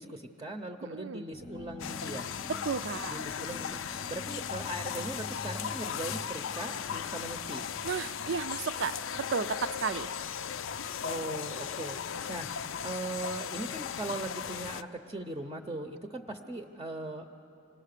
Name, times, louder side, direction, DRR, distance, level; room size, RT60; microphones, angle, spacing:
voice 1, 0.0-2.3 3.1-3.8 4.1-7.7 11.0-12.0 12.3-12.5 12.8-17.2, right 1 dB, 20° right, 4 dB, 0.6 m, -39 dB
voice 2, 0.9-1.2 2.6-3.2 7.8-10.1, right 5 dB, 60° right, 13 dB, 0.5 m, -33 dB
sound 1, 1.3-9.1, left 2 dB, 30° left, 0.6 m, -47 dB
sound 2, 1.8-14.8, left 8 dB, 75° left, 0.5 m, -37 dB
26.5 x 18.5 x 6.6 m, 2.8 s
head